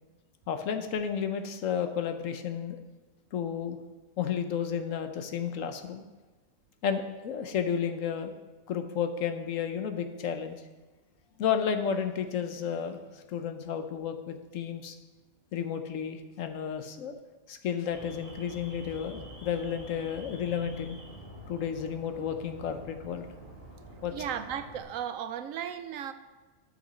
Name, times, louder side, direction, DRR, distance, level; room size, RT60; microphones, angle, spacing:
voice 1, 0.5-2.8 3.3-3.8 4.2-6.0 6.8-8.3 8.7-10.6 11.4-15.0 15.5-17.1 17.5-21.0 21.5-23.3 24.0-24.1, left 7 dB, 70° left, 7 dB, 1.2 m, -32 dB
Alarm, 17.9-24.8, right 1 dB, 40° right, 2.2 m, -47 dB
voice 2, 24.1-26.1, right 9 dB, 75° right, 10 dB, 0.9 m, -35 dB
12.5 x 5.9 x 4.2 m, 1.2 s
omnidirectional pair, 1.4 m